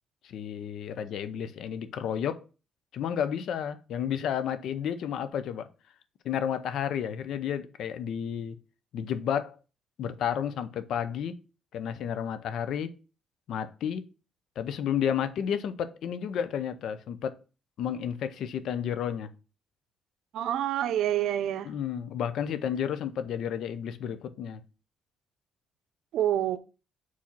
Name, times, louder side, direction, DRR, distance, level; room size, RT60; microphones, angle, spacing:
voice 1, 0.2-2.4 2.9-5.7 6.2-8.6 8.9-9.6 10.0-11.3 11.7-12.9 13.5-14.0 14.6-17.4 17.8-19.3 21.7-24.6, left 8 dB, 75° left, 0.7 m, -31 dB
voice 2, 20.3-21.7 26.1-26.6, right 11 dB, 80° right, 0.6 m, -27 dB
4.8 x 4.2 x 5.9 m
cardioid pair, 90°, 0 cm